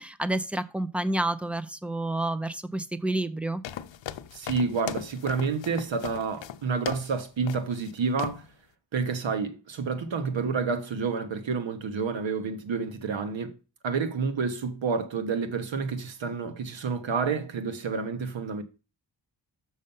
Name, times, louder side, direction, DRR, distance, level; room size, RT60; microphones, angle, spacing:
voice 1, 0.0-3.6, right 1 dB, 5° right, 0.4 m, -29 dB
sound 1, 3.6-7.2 7.5-7.9 8.2-8.5, left 10 dB, 80° left, 0.6 m, -38 dB
voice 2, 4.3-8.4 8.9-13.5 13.8-18.6, right 5 dB, 85° right, 1.3 m, -29 dB
6.4 x 5.5 x 5.4 m
wide cardioid pair, 165°, 44 cm